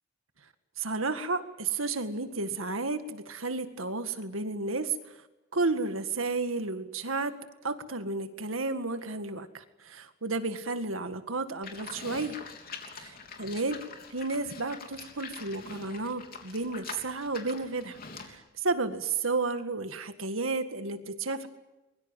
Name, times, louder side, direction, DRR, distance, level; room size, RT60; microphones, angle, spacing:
voice 1, 0.8-4.9 5.5-7.4 7.6-12.4 13.0-13.8 14.1-21.5, right 3 dB, 90° right, 9 dB, 1.9 m, -32 dB
Livestock farm animals working animals, 11.6-18.4, left 5 dB, 45° left, 3.4 m, -44 dB
23.0 x 22.5 x 9.1 m, 1.0 s
head